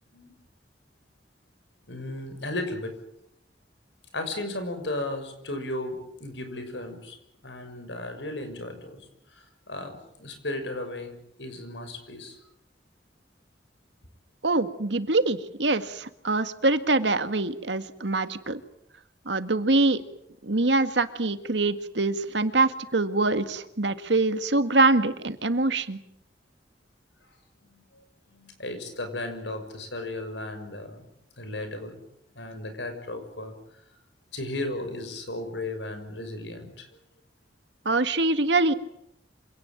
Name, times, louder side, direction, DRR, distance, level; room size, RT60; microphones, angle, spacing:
voice 1, 1.9-2.9 4.1-7.2 7.4-9.1 9.3-12.4 27.7-27.8 28.3-31.1 31.4-32.0 32.4-33.5 34.3-36.9, left 2 dB, 85° left, 8 dB, 6.2 m, -35 dB
voice 2, 14.4-18.6 19.3-20.0 20.4-26.0 37.9-38.7, right 2 dB, 80° right, 10 dB, 1.8 m, -24 dB
26.5 x 18.0 x 9.1 m, 0.77 s
head